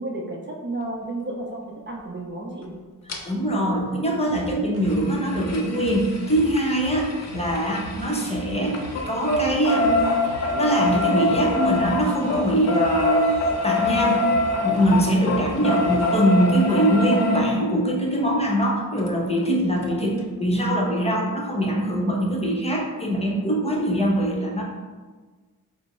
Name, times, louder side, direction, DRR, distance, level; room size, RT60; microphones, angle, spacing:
voice 1, 0.0-2.7, right 2 dB, 30° right, -1 dB, 0.6 m, -32 dB
sound 1, 3.1-3.2 4.8-8.4 8.7-17.4 19.1-19.2 19.4-19.5 19.8-19.9, left 2 dB, 50° left, 0.7 m, -25 dB
voice 2, 3.3-8.8 9.1-10.1 10.5-14.3 14.6-24.6, right 1 dB, 15° left, -1 dB, 0.8 m, -22 dB
sound 2, 4.3-16.3, right 2 dB, 65° right, 0.8 m, -39 dB
5.1 x 2.0 x 4.4 m, 1.4 s
cardioid pair, 75°, 36 cm